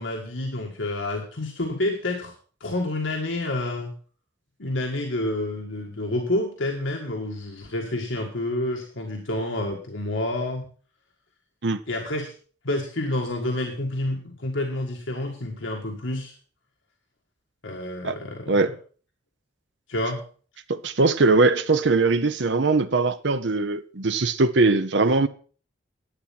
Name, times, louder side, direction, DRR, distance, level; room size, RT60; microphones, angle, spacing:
voice 1, 0.0-2.3 2.6-3.9 4.6-10.6 11.9-12.3 12.6-16.3 17.6-18.6 19.9-20.2, left 1 dB, 85° left, 1.8 m, -28 dB
voice 2, 20.7-25.3, right 3 dB, 65° right, 0.8 m, -21 dB
11.0 x 8.6 x 5.8 m
head